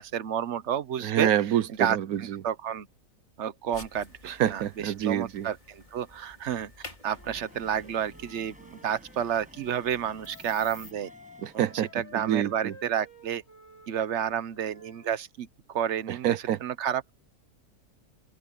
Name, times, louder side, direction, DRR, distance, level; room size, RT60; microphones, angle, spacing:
voice 1, 0.0-1.3 1.8-2.9 3.4-6.7 7.0-11.1 11.7-13.4 13.9-17.1, right 9 dB, 55° right, 1.1 m, -30 dB
voice 2, 1.0-2.4 4.2-5.5 11.4-11.9 12.1-12.7 16.1-16.6, right 11 dB, 75° right, 1.2 m, -27 dB
sound 1, 3.7-10.9, left 1 dB, 30° left, 4.0 m, -50 dB
Wind instrument woodwind instrument, 7.1-15.1, left 2 dB, 60° left, 4.1 m, -53 dB
Train, 7.1-12.1, equal, 5° right, 7.1 m, -55 dB
omnidirectional pair, 1.6 m